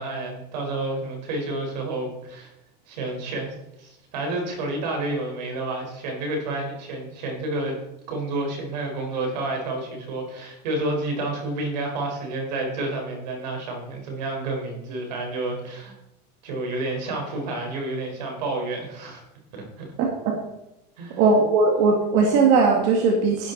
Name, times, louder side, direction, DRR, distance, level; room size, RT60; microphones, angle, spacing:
voice 1, 0.0-2.5 2.9-7.7 8.1-15.9 16.4-19.2 19.5-19.9 21.0-21.2, right 2 dB, 85° right, 2 dB, 4.5 m, -30 dB
voice 2, 20.0-20.4 21.2-23.5, right 4 dB, 60° right, 0 dB, 2.1 m, -19 dB
11.5 x 10.5 x 4.0 m, 0.88 s
supercardioid pair, 125°, 21 cm